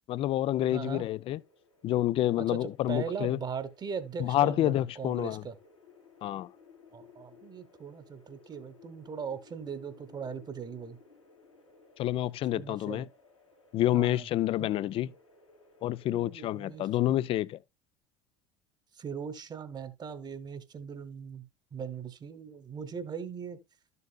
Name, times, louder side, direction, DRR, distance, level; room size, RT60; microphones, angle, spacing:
voice 1, 0.1-1.4 1.8-3.4 4.2-5.4 6.2-6.5 12.0-13.1 13.7-15.1 15.8-17.6, left 13 dB, 35° left, 0.4 m, -28 dB
voice 2, 0.7-1.0 2.4-5.6 6.9-11.0 12.5-13.0 13.9-14.3 14.6-14.7 16.1-16.9 18.9-21.5 21.7-23.6, right 6 dB, 25° right, 1.2 m, -39 dB
sound 1, 1.0-17.3, left 4 dB, 90° left, 2.5 m, -59 dB
12.5 x 6.9 x 2.3 m
figure-of-eight pair, 70°, 15 cm